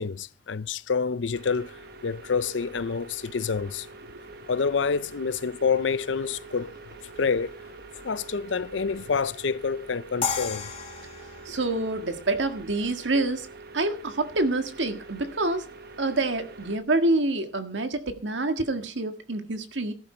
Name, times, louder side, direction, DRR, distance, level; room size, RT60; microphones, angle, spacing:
voice 1, 0.0-3.9 4.5-6.7 7.2-7.6 8.0-10.7, left 5 dB, 85° left, 0.6 m, -27 dB
sound 1, 1.3-16.8, right 3 dB, 60° right, 1.5 m, -45 dB
sound 2, 10.2-13.3, left 6 dB, 30° left, 1.9 m, -34 dB
voice 2, 11.4-13.5 13.7-15.7 16.0-19.9, right 2 dB, 80° right, 1.7 m, -27 dB
13.5 x 11.0 x 4.4 m
head